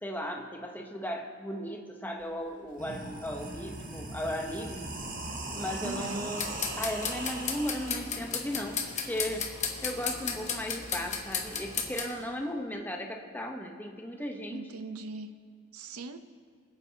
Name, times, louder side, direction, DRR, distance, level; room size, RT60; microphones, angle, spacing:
voice 1, 0.0-4.8 5.5-9.5 9.8-14.8, equal, 10° left, 2 dB, 0.9 m, -36 dB
sound 1, 2.2-2.3 2.7-7.9, right 2 dB, 40° right, 1.3 m, -39 dB
voice 2, 5.8-6.3 14.5-15.4 15.7-16.2, right 3 dB, 80° right, 9 dB, 0.7 m, -40 dB
sound 2, 6.3-12.0, left 6 dB, 35° left, 1.1 m, -35 dB
25.0 x 8.7 x 2.9 m, 2.1 s
head